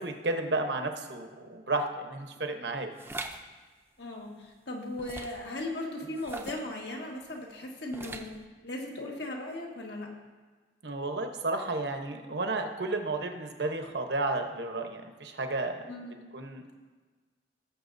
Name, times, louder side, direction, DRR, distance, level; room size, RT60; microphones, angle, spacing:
voice 1, 0.0-2.9 10.8-15.9 16.3-16.7, right 2 dB, 80° right, 5 dB, 1.0 m, -32 dB
sound 1, 3.0-3.4 5.0-5.5 6.2-6.7 7.9-8.4, right 2 dB, 15° right, 0.5 m, -40 dB
voice 2, 4.0-10.1 15.9-16.2, left 1 dB, 75° left, -1 dB, 1.7 m, -38 dB
18.0 x 7.0 x 2.7 m, 1.4 s
head